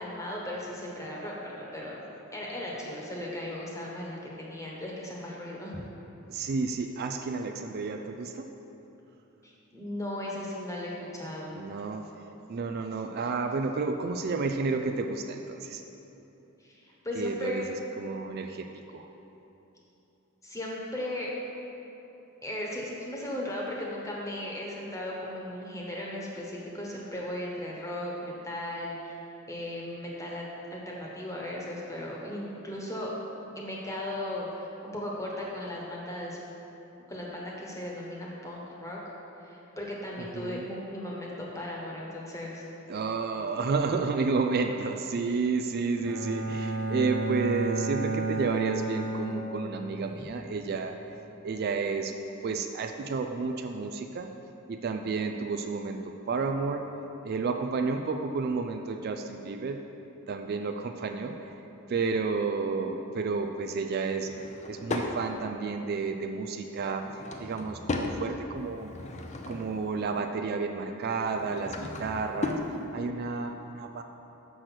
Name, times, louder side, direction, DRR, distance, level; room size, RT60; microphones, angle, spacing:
voice 1, 0.0-2.0 2.3-5.8 9.4-11.6 16.6-17.6 20.4-21.3 22.4-29.2 29.5-33.1 33.5-36.4 37.1-39.1 39.4-42.7, left 1 dB, 15° left, -3 dB, 1.2 m, -37 dB
voice 2, 6.3-8.5 11.5-12.1 12.5-15.8 17.2-17.6 18.0-19.1 40.2-40.6 42.9-51.0 51.4-52.2 52.4-54.3 54.7-56.9 57.2-59.8 60.3-61.5 61.9-64.3 64.7-68.9 69.5-72.6 72.9-74.0, right 4 dB, 50° right, 5 dB, 0.3 m, -31 dB
Bowed string instrument, 46.0-50.1, right 3 dB, 80° right, 0.8 m, -32 dB
Drawer open or close / Wood, 64.2-65.1 66.9-68.2 68.7-69.9 71.2-72.7, left 2 dB, 35° left, 0.5 m, -36 dB
6.5 x 6.2 x 5.9 m, 3.0 s
head